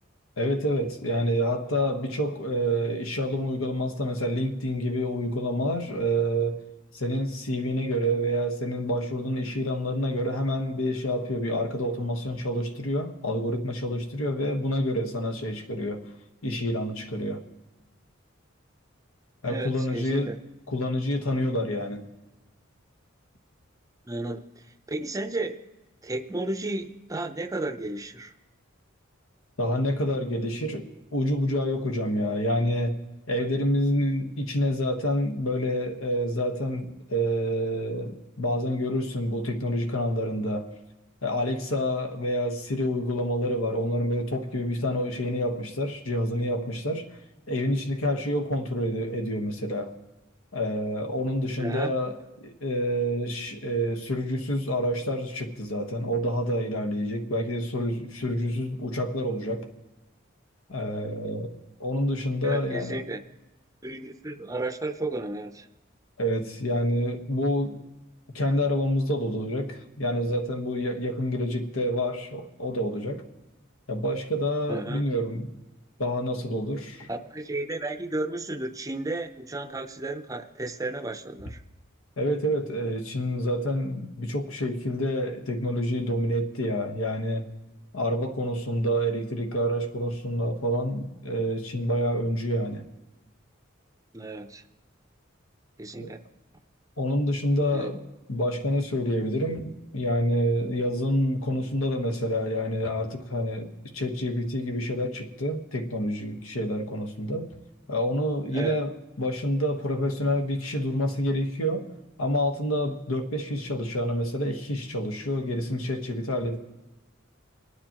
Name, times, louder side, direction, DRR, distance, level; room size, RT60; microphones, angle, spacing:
voice 1, 0.4-6.6 6.9-16.0 16.4-17.4 19.4-20.3 20.7-22.0 29.6-30.9 31.1-33.0 33.3-40.7 41.2-47.1 47.5-49.9 50.5-52.1 52.4-59.7 60.7-63.0 66.2-67.8 68.3-73.2 73.9-75.5 76.0-77.1 82.2-87.4 87.9-92.8 96.0-96.2 97.0-98.0 98.3-107.5 107.9-111.9 112.2-116.6, equal, 90° left, 1.2 m, -28 dB
voice 2, 19.4-20.4 24.1-24.5 24.9-25.6 26.0-28.3 51.6-51.9 62.4-63.2 63.8-65.7 74.7-75.1 77.1-81.6 94.1-94.6 95.8-96.2 97.7-97.9 108.5-108.8, right 2 dB, 15° right, 0.5 m, -33 dB
27.5 x 9.9 x 2.9 m
head